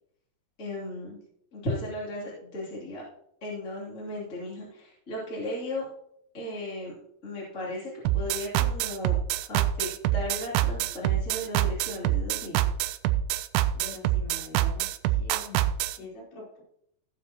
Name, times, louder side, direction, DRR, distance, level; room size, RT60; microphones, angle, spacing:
voice 1, 0.6-1.2 1.5-3.0 3.4-5.8 6.3-6.9 7.2-9.2 9.5-12.6, left 1 dB, 20° left, -7 dB, 2.2 m, -35 dB
sound 1, 8.1-16.0, right 13 dB, 85° right, 2.4 m, -26 dB
voice 2, 13.7-16.6, left 3 dB, 65° left, -3 dB, 5.0 m, -45 dB
16.5 x 7.2 x 2.9 m, 0.73 s
omnidirectional pair, 5.2 m